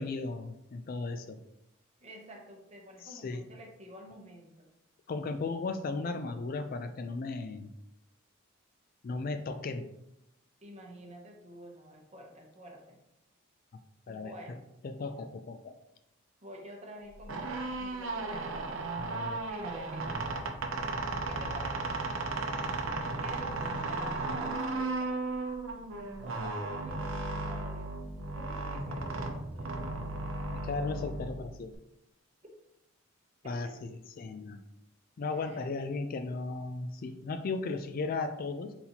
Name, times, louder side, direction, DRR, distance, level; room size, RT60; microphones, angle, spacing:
voice 1, 0.0-1.4 3.0-3.5 5.1-7.7 9.0-9.9 14.1-14.3 14.8-15.7 19.0-19.4 30.5-31.7 33.4-33.9 34.2-34.6 35.2-38.7, left 3 dB, 45° left, 8 dB, 0.3 m, -36 dB
voice 2, 2.0-4.7 10.6-13.0 14.1-14.6 16.4-18.8 19.5-20.5 21.2-21.8 23.2-25.2 26.2-29.7 33.4-33.8 35.3-35.6, equal, 30° right, 1 dB, 0.8 m, -49 dB
sound 1, 17.1-31.7, right 2 dB, 75° right, 0.6 m, -35 dB
4.1 x 4.1 x 2.8 m, 0.84 s
head